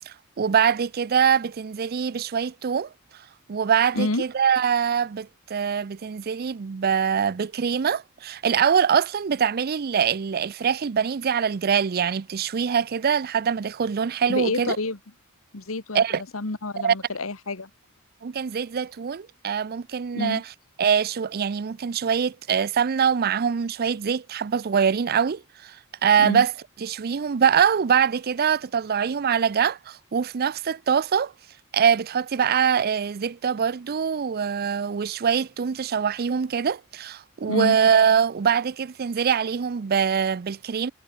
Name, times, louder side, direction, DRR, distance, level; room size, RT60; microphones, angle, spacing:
voice 1, 0.1-2.9 3.5-14.8 15.9-16.2 16.8-16.9 18.2-20.4 20.8-25.8 26.0-26.5 26.8-31.3 31.7-40.9, right 7 dB, 45° right, 0.5 m, -23 dB
voice 2, 14.3-15.0 15.5-17.7 20.1-20.4 26.2-26.4 37.5-37.8, left 2 dB, 75° left, 1.7 m, -28 dB
head